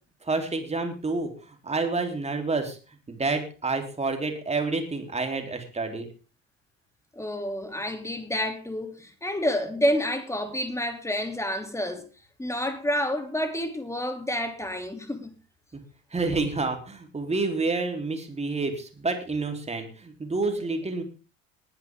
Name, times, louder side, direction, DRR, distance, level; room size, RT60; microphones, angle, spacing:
voice 1, 0.2-2.8 3.1-6.1 15.7-15.8 16.1-21.0, right 3 dB, 15° right, 3.6 m, -29 dB
voice 2, 7.1-12.1 12.4-15.3, equal, 5° left, 3.0 m, -29 dB
20.0 x 10.5 x 3.7 m
figure-of-eight pair, 65°, 40 cm